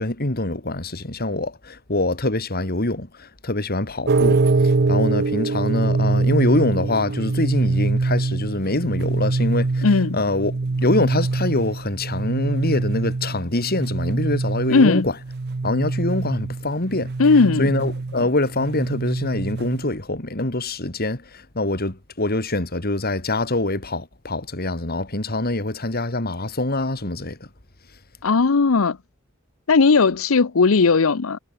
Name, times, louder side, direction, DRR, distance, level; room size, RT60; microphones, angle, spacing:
voice 1, 0.0-9.8 10.1-15.1 15.6-17.1 17.6-21.2 21.5-27.4, left 2 dB, 50° left, 3.2 m, -24 dB
sound 1, 4.1-19.9, right 3 dB, 50° right, 0.7 m, -24 dB
voice 2, 9.8-10.2 14.7-15.1 17.2-17.7 28.2-29.0 29.7-31.4, left 4 dB, 90° left, 0.7 m, -17 dB
head